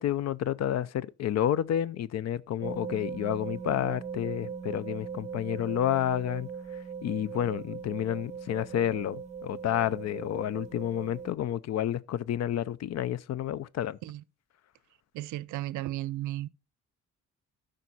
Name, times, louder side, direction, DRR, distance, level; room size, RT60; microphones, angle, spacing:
voice 1, 0.0-6.5 7.0-14.0, left 11 dB, 60° left, 0.6 m, -30 dB
sound 1, 2.6-11.3, right 6 dB, 25° right, 0.7 m, -40 dB
voice 2, 15.1-16.5, right 15 dB, 80° right, 0.5 m, -34 dB
12.5 x 5.2 x 4.1 m
cardioid pair, 90°, 30 cm